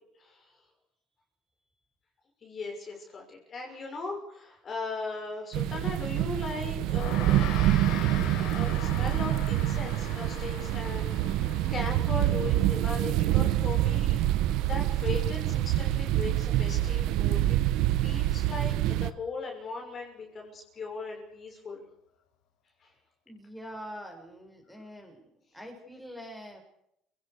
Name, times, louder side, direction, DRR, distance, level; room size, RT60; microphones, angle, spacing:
voice 1, 0.2-0.5 2.4-7.4 8.5-11.1 11.7-17.6 18.0-21.8 22.8-22.9, left 3 dB, 30° left, 2 dB, 6.3 m, -38 dB
sound 1, 5.5-19.1, right 13 dB, 65° right, 1.2 m, -26 dB
Gong, 6.8-16.4, left 8 dB, 65° left, 5.6 m, -43 dB
voice 2, 23.3-25.2 25.5-26.6, equal, ahead, 1 dB, 7.7 m, -44 dB
29.5 x 18.5 x 6.7 m, 0.74 s
cardioid pair, 155°, 0 cm